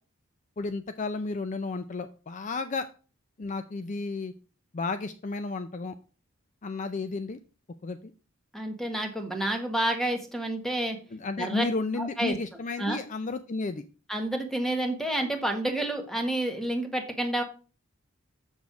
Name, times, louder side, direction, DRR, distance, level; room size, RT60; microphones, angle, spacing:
voice 1, 0.6-2.9 3.4-4.3 4.7-6.0 6.6-7.4 7.8-8.0 11.1-13.8, left 3 dB, 35° left, 10 dB, 0.4 m, -32 dB
voice 2, 8.5-11.0 11.4-11.6 12.0-12.3 12.8-13.0 14.1-17.4, right 1 dB, ahead, 5 dB, 1.4 m, -29 dB
7.1 x 6.1 x 4.8 m, 0.36 s
head